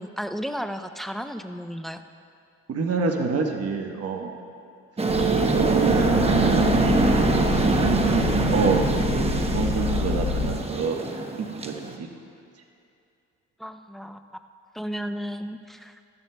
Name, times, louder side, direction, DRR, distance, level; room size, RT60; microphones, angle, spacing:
voice 1, 0.0-2.0 13.6-14.2 14.7-15.9, equal, ahead, 7 dB, 0.5 m, -33 dB
voice 2, 2.7-4.4 5.3-7.1 7.6-11.0 11.4-12.1, right 4 dB, 55° right, 2 dB, 1.1 m, -27 dB
sound 1, 5.0-11.9, right 3 dB, 20° right, 0.9 m, -23 dB
sound 2, 5.1-10.5, left 4 dB, 40° left, 1.8 m, -28 dB
18.5 x 13.0 x 2.2 m, 2.5 s
cardioid pair, 90°, 30 cm